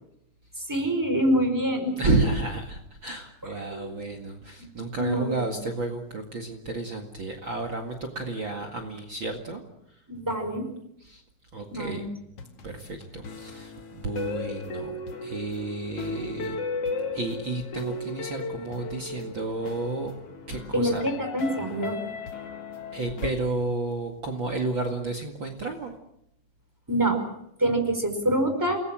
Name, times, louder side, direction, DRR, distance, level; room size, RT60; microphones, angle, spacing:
voice 1, 0.6-2.0 3.7-3.9 5.0-5.5 10.1-10.7 11.7-12.0 20.7-22.0 26.9-27.2 27.6-28.8, right 1 dB, 5° right, 7 dB, 4.9 m, -25 dB
voice 2, 2.0-9.6 9.9-10.0 11.0-11.2 11.5-12.1 12.6-16.6 17.1-20.1 20.5-21.1 22.9-26.0, right 2 dB, 45° right, 3 dB, 2.6 m, -31 dB
sound 1, 12.4-23.3, left 3 dB, 55° left, 2.9 m, -36 dB
29.0 x 20.0 x 7.6 m, 0.78 s
omnidirectional pair, 3.5 m